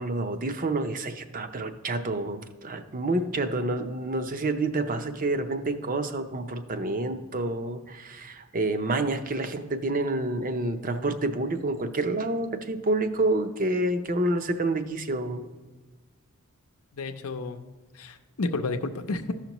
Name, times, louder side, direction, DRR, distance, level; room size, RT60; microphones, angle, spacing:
voice 1, 0.0-15.4, right 2 dB, 40° right, 7 dB, 0.6 m, -28 dB
voice 2, 16.9-17.7 17.9-19.3, left 3 dB, 85° left, 8 dB, 0.6 m, -31 dB
14.0 x 5.8 x 3.0 m, 1.4 s
head